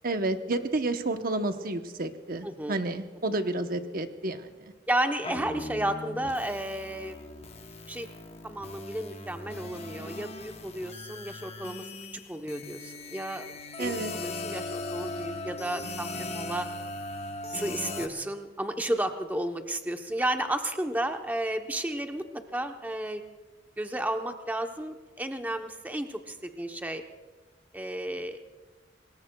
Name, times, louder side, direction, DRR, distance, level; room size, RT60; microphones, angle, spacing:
voice 1, 0.0-4.7 13.8-14.1, right 2 dB, 50° right, 8 dB, 0.9 m, -30 dB
voice 2, 2.4-2.8 4.9-7.2 7.9-8.1 8.4-11.9 12.3-13.5 13.8-16.7 17.5-23.2 23.8-27.0 27.7-28.4, right 1 dB, 10° right, 5 dB, 0.8 m, -32 dB
sound 1, 5.2-18.1, left 2 dB, 35° left, 0.9 m, -39 dB
26.0 x 20.5 x 2.3 m, 1.3 s
head